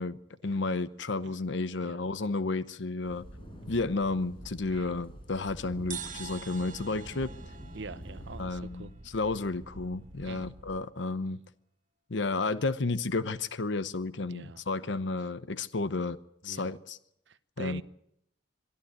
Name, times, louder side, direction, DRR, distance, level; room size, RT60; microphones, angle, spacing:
voice 1, 0.0-3.3 3.7-7.3 8.4-11.4 12.1-16.2 16.4-17.0 17.6-17.8, left 3 dB, 65° left, 0.8 m, -32 dB
sound 1, 3.0-10.8, right 1 dB, 85° right, 1.5 m, -50 dB
sound 2, 3.1-8.4, equal, 25° left, 5.9 m, -48 dB
sound 3, 5.9-9.4, right 8 dB, 40° right, 1.5 m, -45 dB
voice 2, 7.7-8.9 10.2-10.6 11.3-11.4 14.2-14.6 16.4-16.7 17.3-17.8, right 3 dB, 65° right, 0.9 m, -45 dB
23.0 x 14.0 x 9.4 m
head